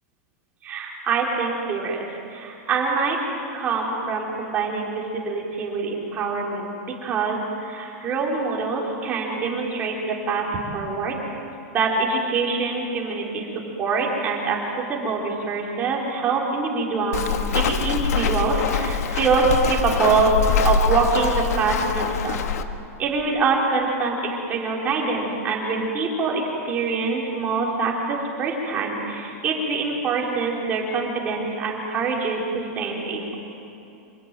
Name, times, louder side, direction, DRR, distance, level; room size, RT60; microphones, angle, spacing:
voice 1, 0.6-3.2 3.5-10.5 10.7-11.2 11.7-13.5 13.8-22.5 23.0-24.2 24.5-32.4 32.8-33.3, right 4 dB, 20° right, -2 dB, 4.4 m, -24 dB
Walk footsteps, 17.1-22.6, left 6 dB, 85° left, 1.5 m, -24 dB
27.5 x 19.5 x 9.3 m, 2.8 s
supercardioid pair, 170°, 8 cm